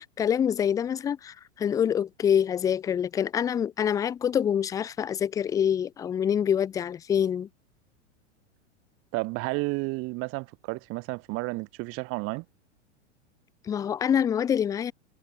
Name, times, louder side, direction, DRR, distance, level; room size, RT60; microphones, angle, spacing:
voice 1, 0.0-7.5 13.6-14.9, left 8 dB, 10° left, 0.4 m, -26 dB
voice 2, 9.1-12.4, right 25 dB, 40° right, 1.1 m, -31 dB
hypercardioid pair, 100°, 36 cm